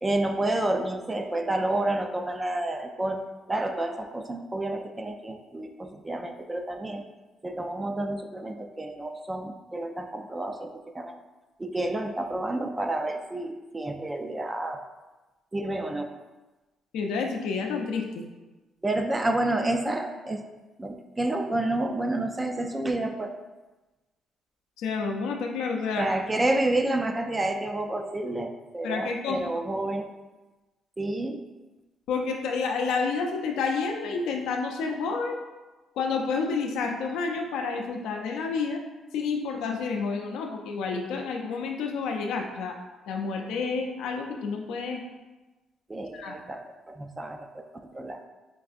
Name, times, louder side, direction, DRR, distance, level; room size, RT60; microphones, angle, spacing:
voice 1, 0.0-7.0 7.4-11.2 11.6-14.8 15.5-16.1 18.8-20.4 20.8-23.3 26.0-30.1 31.0-31.4 45.9-47.7 47.9-48.2, right 1 dB, 20° right, 6 dB, 0.3 m, -29 dB
voice 2, 16.9-18.2 24.8-26.1 28.8-29.4 32.1-35.4 36.0-38.8 39.1-42.8 43.1-45.0 46.1-46.4, left 4 dB, 90° left, 2 dB, 0.4 m, -29 dB
4.6 x 2.5 x 2.4 m, 1.1 s
cardioid pair, 90°, 0 cm